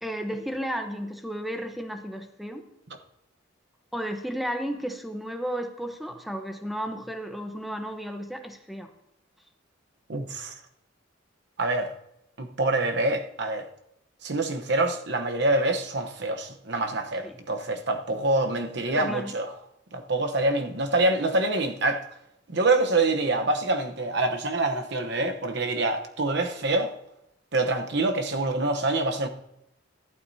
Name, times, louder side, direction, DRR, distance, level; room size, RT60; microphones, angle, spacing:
voice 1, 0.0-2.6 3.9-8.9 17.2-17.4 18.8-19.4, equal, ahead, 0.9 m, -33 dB
voice 2, 10.1-10.5 11.6-11.9 12.4-13.7 14.2-19.5 19.9-22.0 22.5-26.9 27.5-29.3, right 2 dB, 55° right, 1.0 m, -26 dB
14.5 x 12.0 x 2.8 m
head